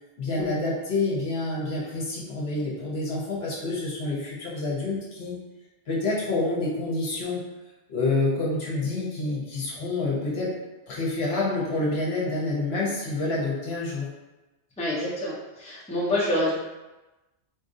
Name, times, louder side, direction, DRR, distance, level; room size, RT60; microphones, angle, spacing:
voice 1, 0.2-5.4 5.9-7.5 7.9-10.5 10.9-14.1, left 2 dB, 65° left, -5 dB, 1.1 m, -28 dB
voice 2, 14.8-16.5, left 1 dB, 5° left, -7 dB, 0.7 m, -27 dB
4.2 x 2.5 x 2.6 m, 1.1 s
omnidirectional pair, 1.2 m